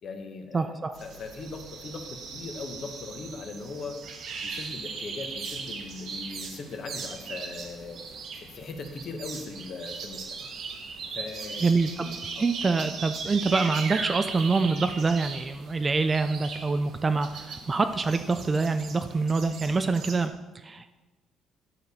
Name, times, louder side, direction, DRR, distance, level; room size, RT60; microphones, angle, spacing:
voice 1, 0.0-4.0 4.4-8.0 8.3-10.5 11.1-11.7 12.0-12.4, left 3 dB, 40° left, 5 dB, 1.0 m, -39 dB
voice 2, 0.5-1.0 11.6-20.9, right 4 dB, 20° right, 9 dB, 0.3 m, -26 dB
sound 1, 0.9-20.3, right 5 dB, 50° right, 1.1 m, -39 dB
10.0 x 6.6 x 4.1 m, 1.2 s
cardioid pair, 170°, 0 cm